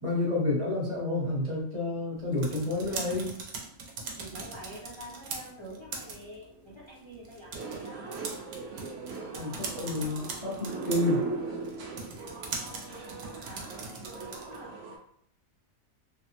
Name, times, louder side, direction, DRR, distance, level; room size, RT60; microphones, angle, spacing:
voice 1, 0.0-3.3 9.3-11.2, left 2 dB, 25° right, -6 dB, 1.0 m, -29 dB
sound 1, 2.2-14.7, right 4 dB, 90° right, 1.1 m, -42 dB
voice 2, 4.2-8.3 12.5-14.8, right 1 dB, 40° left, -7 dB, 0.4 m, -47 dB
sound 2, 7.5-15.0, right 3 dB, 65° right, 0.9 m, -39 dB
3.3 x 2.0 x 2.8 m, 0.68 s
omnidirectional pair, 1.5 m